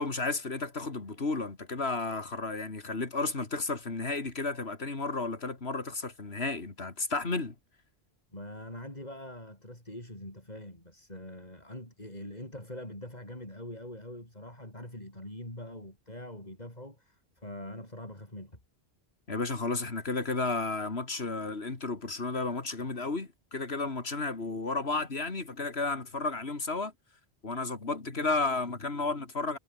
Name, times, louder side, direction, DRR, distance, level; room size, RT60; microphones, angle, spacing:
voice 1, 0.0-7.5 19.3-26.9 27.4-29.6, left 3 dB, 85° left, 3.0 m, -32 dB
voice 2, 8.3-18.6, left 1 dB, 40° left, 7.5 m, -43 dB
omnidirectional pair, 1.0 m